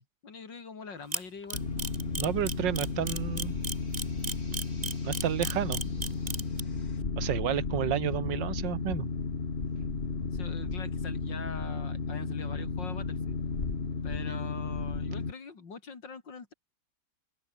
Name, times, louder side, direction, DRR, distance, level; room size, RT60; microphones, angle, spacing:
voice 1, 0.0-1.6 10.3-13.4 14.0-16.5, left 5 dB, 80° left, 3.6 m, -43 dB
Camera, 1.1-6.6, right 3 dB, 25° right, 1.6 m, -33 dB
sound 1, 1.5-7.0, left 2 dB, 55° left, 7.4 m, -51 dB
Boat Water vehicle, 1.5-15.3, left 4 dB, 35° left, 2.1 m, -33 dB
voice 2, 2.2-3.6 5.0-5.8 7.2-9.1, right 10 dB, 85° right, 1.7 m, -31 dB
omnidirectional pair, 1.9 m